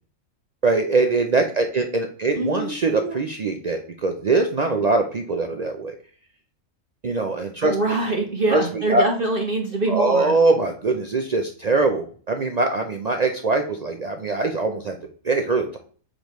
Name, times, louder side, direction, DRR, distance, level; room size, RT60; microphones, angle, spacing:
voice 1, 0.6-5.9 7.0-7.7 8.5-8.6 8.9-9.1 9.9-15.0 15.2-15.8, right 3 dB, 70° right, 4 dB, 0.3 m, -22 dB
voice 2, 2.3-3.2 7.6-10.3, right 2 dB, 45° right, 1 dB, 1.0 m, -24 dB
6.2 x 5.0 x 3.0 m, 0.43 s
omnidirectional pair, 1.4 m